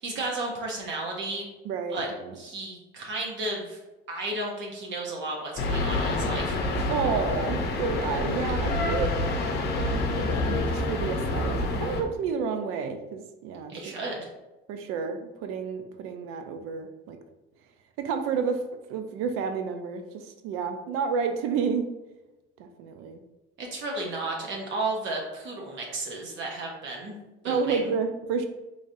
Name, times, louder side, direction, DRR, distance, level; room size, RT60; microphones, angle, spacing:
voice 1, 0.0-1.5 1.9-2.1 2.4-3.8 4.1-6.6 13.7-14.3 23.6-27.2 27.4-27.9, right 2 dB, 60° right, -1 dB, 0.8 m, -33 dB
voice 2, 1.6-2.4 6.9-9.1 9.7-13.7 14.7-17.2 18.0-18.6 18.9-21.9 22.6-23.2 27.5-28.5, right 5 dB, 90° right, 7 dB, 0.5 m, -30 dB
sound 1, 5.6-12.0, left 2 dB, 50° left, 0.6 m, -27 dB
3.8 x 3.1 x 2.6 m, 1.0 s
cardioid pair, 125°, 21 cm